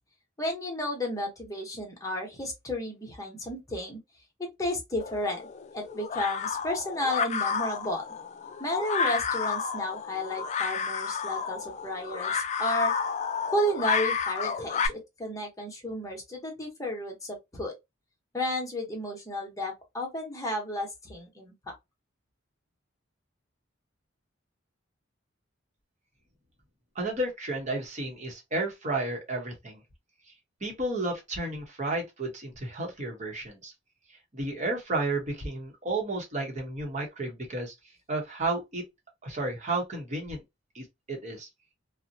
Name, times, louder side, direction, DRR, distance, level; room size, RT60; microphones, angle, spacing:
voice 1, 0.4-4.0 4.6-5.4 5.7-8.1 8.6-12.9 13.5-17.7 18.3-21.7, left 1 dB, 15° left, 0.9 m, -32 dB
sound 1, 5.0-14.9, left 6 dB, 35° left, 0.3 m, -31 dB
voice 2, 26.9-29.8 30.6-33.7 34.3-37.7 38.1-38.8 39.2-40.4 40.7-41.5, right 2 dB, 35° right, 0.9 m, -32 dB
2.6 x 2.1 x 2.6 m
head